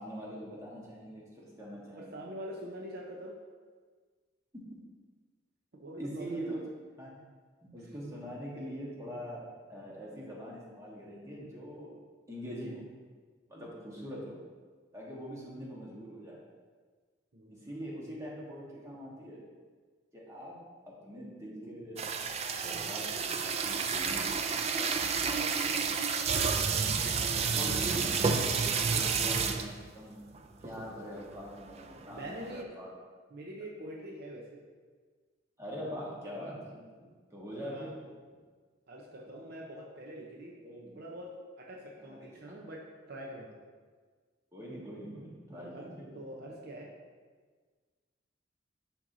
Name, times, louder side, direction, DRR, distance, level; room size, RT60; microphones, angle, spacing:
voice 1, 0.0-2.1 6.0-6.6 7.0-7.2 7.6-11.9 12.3-12.9 13.5-14.4 14.9-16.4 17.5-19.4 20.1-20.6 20.8-22.1 22.6-25.8 26.2-26.3 27.5-32.2 32.5-32.9 35.6-36.7 37.3-37.9 40.6-41.0 42.0-42.6 44.5-46.4, equal, 15° right, -5 dB, 1.3 m, -43 dB
voice 2, 2.0-3.4 5.7-6.4 17.3-17.7 32.1-32.7 33.3-34.6 36.7-36.9 37.5-37.9 38.9-40.6 41.0-41.3 41.6-43.6 45.6-45.9 46.1-46.9, right 1 dB, 55° right, -2 dB, 0.7 m, -44 dB
sound 1, 22.0-29.8 30.3-30.4 30.6-30.9 31.3-32.6, right 5 dB, 35° right, 0.4 m, -30 dB
11.0 x 4.5 x 2.7 m, 1.5 s
head